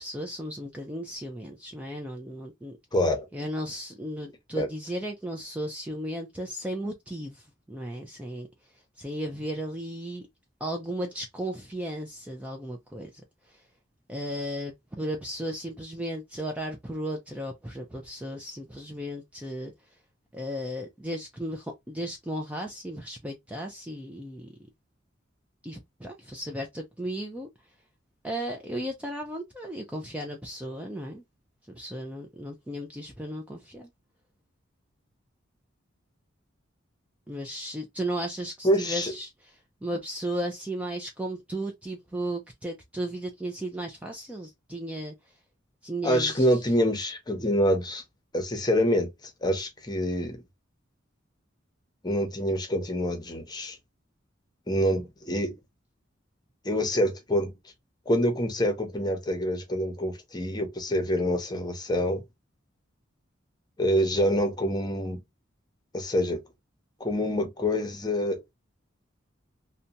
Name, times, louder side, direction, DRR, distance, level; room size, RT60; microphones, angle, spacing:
voice 1, 0.0-2.8 3.3-8.5 9.0-10.3 10.6-13.2 13.5-13.6 14.1-19.7 20.3-24.5 25.6-27.5 28.2-31.2 31.7-33.9 37.3-39.5 39.8-45.1 45.8-46.6, right 1 dB, 5° right, 0.4 m, -35 dB
voice 2, 2.9-3.3 4.5-4.7 38.6-39.1 46.0-48.0 48.3-49.1 49.4-50.4 52.0-53.8 54.7-55.5 56.6-57.5 58.1-62.2 63.8-65.2 65.9-66.4 67.0-68.4, equal, 20° left, 0.8 m, -26 dB
2.8 x 2.2 x 2.5 m
head